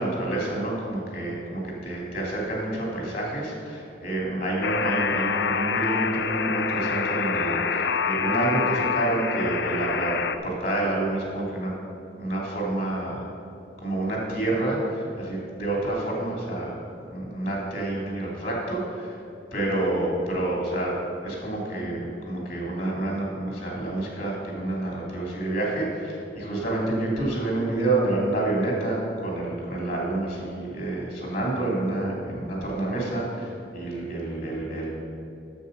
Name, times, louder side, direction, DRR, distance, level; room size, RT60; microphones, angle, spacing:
voice 1, 0.0-10.1 10.4-11.7 12.2-13.2 13.8-16.8 17.0-19.2 19.5-20.9 21.2-34.9, right 2 dB, 55° left, -2 dB, 2.6 m, -28 dB
Alarm, 4.6-10.4, left 5 dB, 70° left, 0.5 m, -26 dB
8.1 x 7.3 x 6.6 m, 2.8 s
head